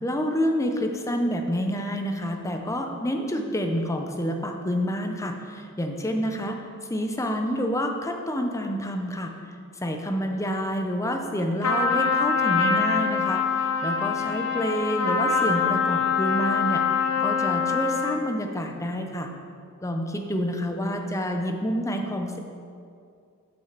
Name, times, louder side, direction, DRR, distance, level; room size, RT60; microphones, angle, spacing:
voice 1, 0.0-6.6 6.9-9.3 9.8-19.3 19.8-22.4, equal, 15° left, 4 dB, 0.6 m, -28 dB
Trumpet, 11.6-18.3, left 5 dB, 75° left, 0.7 m, -24 dB
6.3 x 5.7 x 6.6 m, 2.3 s
head